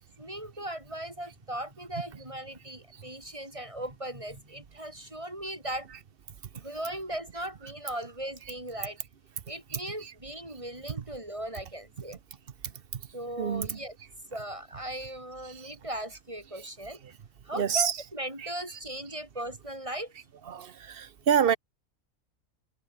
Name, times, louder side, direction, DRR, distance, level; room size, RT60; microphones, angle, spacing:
voice 1, 0.2-5.9 6.5-9.0 9.5-12.2 13.1-13.9 14.3-17.0 17.4-20.1, right 1 dB, 20° right, 6.8 m, -38 dB
voice 2, 9.7-10.1 11.0-11.1 12.6-13.0 13.4-13.8 15.4-15.7 17.5-18.0 18.4-18.8 20.5-21.6, right 8 dB, 45° right, 1.0 m, -29 dB
omnidirectional pair, 1.4 m